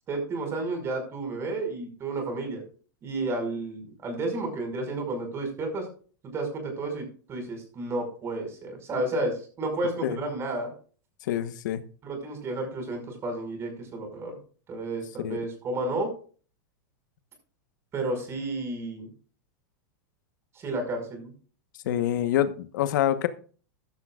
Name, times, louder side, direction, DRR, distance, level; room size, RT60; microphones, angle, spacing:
voice 1, 0.1-2.6 3.0-5.9 6.3-10.7 12.0-14.3 14.7-16.1 17.9-19.1 20.6-21.3, right 2 dB, 25° right, 5.5 m, -31 dB
voice 2, 11.3-11.8 15.2-15.4 21.9-23.3, left 11 dB, 70° left, 1.2 m, -26 dB
14.5 x 12.0 x 2.4 m
supercardioid pair, 150°, 10 cm